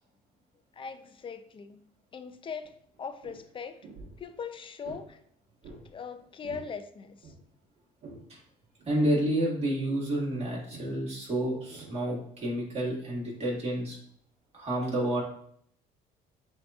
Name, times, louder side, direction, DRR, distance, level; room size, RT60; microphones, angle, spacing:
voice 1, 0.8-1.8 2.1-3.8 4.2-5.2 5.9-7.3, left 6 dB, 30° left, 10 dB, 0.4 m, -40 dB
sound 1, 2.6-2.7 2.9-3.4 3.8-4.2 4.8-5.1 5.6-5.9 6.2-6.7 7.0-8.3 8.8-9.0 10.7-11.0 11.5-12.6 13.2-13.4, right 3 dB, 60° right, 1.3 m, -48 dB
voice 2, 8.9-14.0 14.5-15.2, right 1 dB, 40° right, -3 dB, 1.9 m, -29 dB
7.7 x 2.8 x 2.4 m, 0.66 s
cardioid pair, 110°, 17 cm